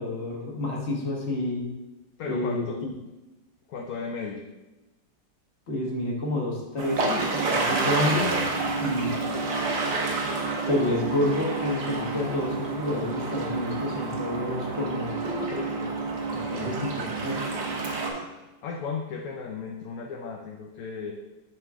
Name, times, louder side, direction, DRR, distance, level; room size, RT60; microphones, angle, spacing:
voice 1, 0.0-1.7 2.2-2.9 5.7-8.3 8.8-9.1 10.7-15.2 16.3-17.4, left 1 dB, 40° left, -2 dB, 1.4 m, -29 dB
voice 2, 2.2-2.8 3.7-4.4 7.5-9.4 15.4-16.0 18.1-21.1, left 5 dB, 65° left, 1 dB, 0.9 m, -36 dB
sound 1, 6.8-18.1, right 3 dB, 65° right, 1.6 m, -29 dB
9.3 x 3.7 x 3.5 m, 1.0 s
omnidirectional pair, 2.0 m